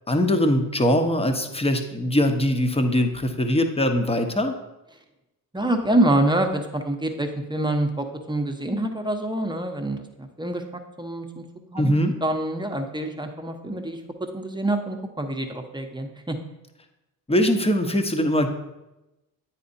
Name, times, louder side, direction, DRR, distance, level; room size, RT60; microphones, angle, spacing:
voice 1, 0.1-4.5 11.8-12.1 17.3-18.5, left 1 dB, 10° left, 6 dB, 0.9 m, -22 dB
voice 2, 5.5-10.6 11.0-11.4 11.7-11.9 12.2-14.0 14.3-16.4, right 1 dB, 10° right, 4 dB, 0.9 m, -26 dB
9.4 x 4.3 x 2.7 m, 0.97 s
hypercardioid pair, 45°, 48 cm